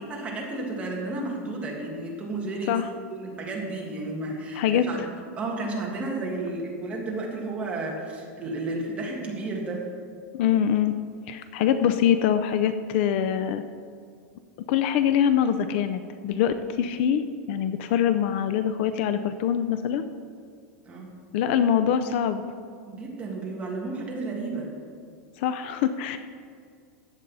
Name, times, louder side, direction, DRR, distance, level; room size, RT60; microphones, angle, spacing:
voice 1, 0.0-2.8 3.1-5.1 5.4-9.9 20.9-21.2 22.9-24.7, right 2 dB, 15° right, -2 dB, 1.8 m, -32 dB
voice 2, 4.6-4.9 10.3-11.0 11.3-13.6 14.7-17.2 17.5-20.0 21.3-22.4 25.4-26.2, left 9 dB, 50° left, 11 dB, 0.5 m, -24 dB
14.5 x 8.9 x 4.1 m, 2.2 s
supercardioid pair, 170°, 8 cm